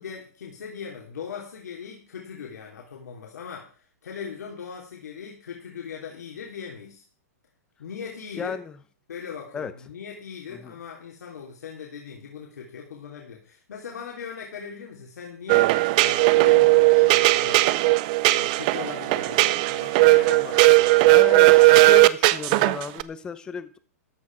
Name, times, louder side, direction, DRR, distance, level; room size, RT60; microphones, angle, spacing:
voice 1, 0.0-7.0 7.8-8.6 9.1-17.7 18.3-21.2, left 7 dB, 85° left, -1 dB, 3.5 m, -39 dB
voice 2, 8.4-8.7 9.5-9.7 10.5-10.7 21.0-23.8, left 6 dB, 10° left, 14 dB, 0.7 m, -33 dB
sound 1, 15.5-23.0, right 20 dB, 30° right, 0.5 m, -17 dB
14.0 x 10.0 x 4.9 m, 0.40 s
hypercardioid pair, 170°, 9 cm